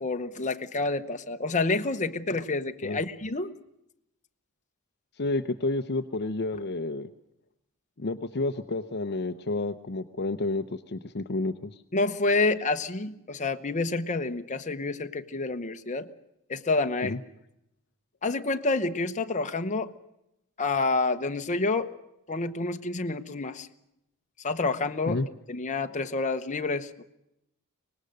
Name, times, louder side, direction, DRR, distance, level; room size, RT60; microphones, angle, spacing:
voice 1, 0.0-3.5 11.9-16.1 16.5-17.2 18.2-19.9 20.6-21.9 22.3-23.7 24.4-25.2 25.5-27.0, left 3 dB, 35° left, 7 dB, 0.9 m, -28 dB
voice 2, 5.2-7.1 8.0-11.7 17.0-17.2 25.1-25.3, left 2 dB, 50° left, 8 dB, 0.7 m, -30 dB
24.5 x 19.5 x 6.6 m, 0.85 s
head